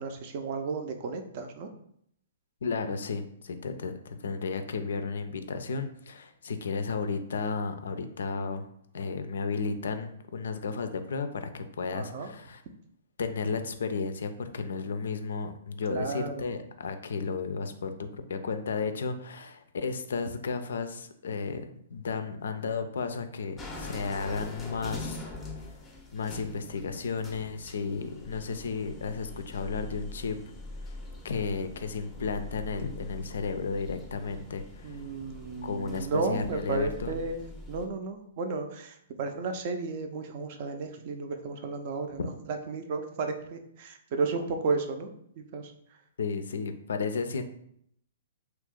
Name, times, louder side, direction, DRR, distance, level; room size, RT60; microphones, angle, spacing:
voice 1, 0.0-1.7 11.9-12.3 15.9-16.3 34.8-45.1 45.4-45.7, right 4 dB, 45° right, 6 dB, 0.5 m, -33 dB
voice 2, 2.6-8.7 8.9-12.6 13.2-25.2 25.6-25.7 26.1-30.4 31.2-35.0 35.6-37.2 42.2-42.3 46.2-47.4, left 4 dB, 65° left, 9 dB, 0.4 m, -33 dB
sound 1, 23.6-37.9, left 2 dB, 10° left, 0.6 m, -43 dB
2.8 x 2.5 x 3.6 m, 0.70 s
figure-of-eight pair, 115°, 0 cm